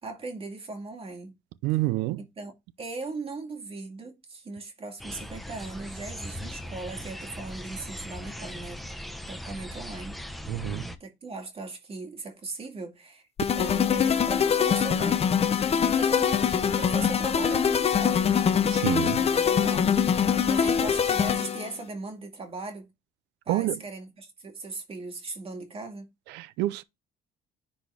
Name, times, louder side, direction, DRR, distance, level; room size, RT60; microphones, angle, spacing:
voice 1, 0.0-1.3 2.4-8.9 9.3-10.2 11.0-13.3 13.5-15.2 15.8-18.3 19.2-20.0 20.5-22.9 23.5-26.1, right 3 dB, 35° right, 2.2 m, -38 dB
voice 2, 1.6-2.2 10.5-10.8 18.7-19.2 23.5-23.8 26.3-26.8, right 16 dB, 90° right, 0.5 m, -27 dB
sound 1, 5.0-11.0, equal, ahead, 1.0 m, -39 dB
sound 2, 13.4-21.7, left 7 dB, 35° left, 0.8 m, -23 dB
10.0 x 4.3 x 3.4 m
cardioid pair, 110°, 17 cm